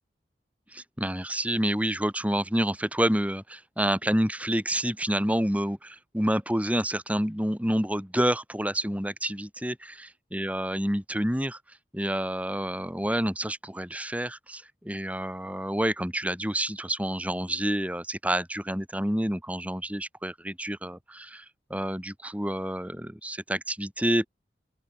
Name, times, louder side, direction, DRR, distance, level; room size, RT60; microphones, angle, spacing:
voice 1, 0.7-24.3, right 1 dB, 10° right, 7.5 m, -28 dB
open air
head